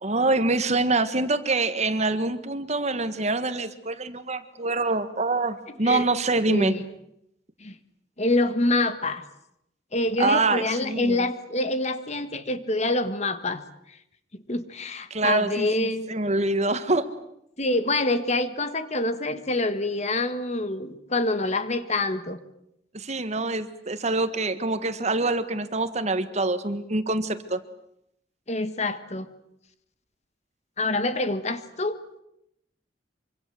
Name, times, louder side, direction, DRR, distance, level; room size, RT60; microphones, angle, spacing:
voice 1, 0.0-6.7 10.2-11.3 15.1-17.1 22.9-27.6, right 2 dB, 40° right, 11 dB, 1.6 m, -25 dB
voice 2, 6.4-6.8 7.6-7.7 8.2-9.2 9.9-13.6 14.3-16.1 17.6-22.4 28.5-29.3 30.8-32.0, left 2 dB, 40° left, 11 dB, 1.6 m, -26 dB
25.5 x 25.0 x 7.8 m, 0.78 s
head